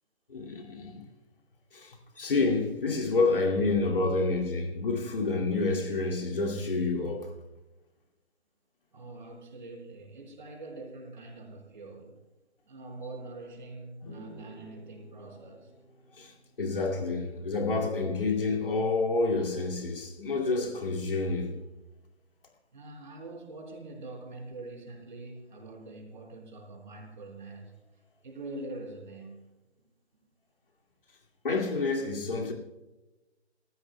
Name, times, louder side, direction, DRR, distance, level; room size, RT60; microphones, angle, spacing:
voice 1, 0.3-1.1 1.7-7.3 16.2-16.3 16.6-21.6 31.4-32.5, left 3 dB, 50° left, 2.5 m, -28 dB
voice 2, 8.9-12.1 12.6-15.7 22.7-27.7 28.2-29.4, right 2 dB, 45° right, 4.7 m, -44 dB
sound 1, 14.0-17.6, equal, 30° left, 5.3 m, -51 dB
26.5 x 15.0 x 2.3 m
hypercardioid pair, 170°, 34 cm